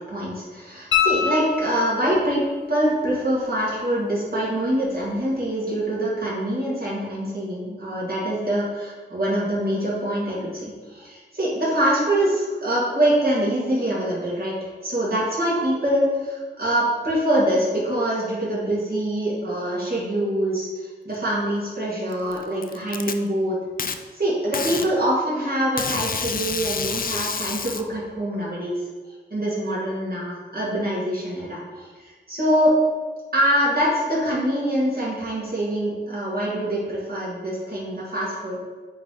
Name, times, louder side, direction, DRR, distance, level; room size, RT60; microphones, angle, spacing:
voice 1, 0.0-20.7 21.0-23.6 24.2-28.8 29.3-32.8 33.3-38.6, right 1 dB, 55° right, -7 dB, 1.9 m, -24 dB
sound 1, 0.9-2.2 5.0-5.1, left 7 dB, 80° left, 0.7 m, -24 dB
Packing tape duct tape, 22.1-23.1 23.8-24.0 24.5-24.9 25.8-27.8, left 6 dB, 50° left, 0.4 m, -28 dB
8.5 x 3.0 x 3.9 m, 1.4 s
wide cardioid pair, 95°, 19 cm